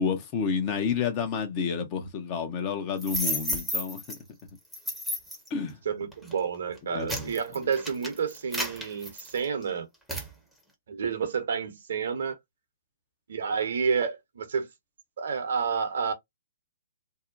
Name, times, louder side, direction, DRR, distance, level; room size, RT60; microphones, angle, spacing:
voice 1, 0.0-4.2 5.5-5.8 6.9-7.7, left 6 dB, 35° left, 0.8 m, -30 dB
sound 1, 3.0-4.2 4.7-5.5 6.1-6.3 6.8-9.6 10.1-10.3, equal, ahead, 0.8 m, -32 dB
voice 2, 5.8-9.9 10.9-12.4 13.3-14.7 15.2-16.1, right 6 dB, 65° right, 0.8 m, -29 dB
2.7 x 2.1 x 2.5 m
figure-of-eight pair, 125°, 0 cm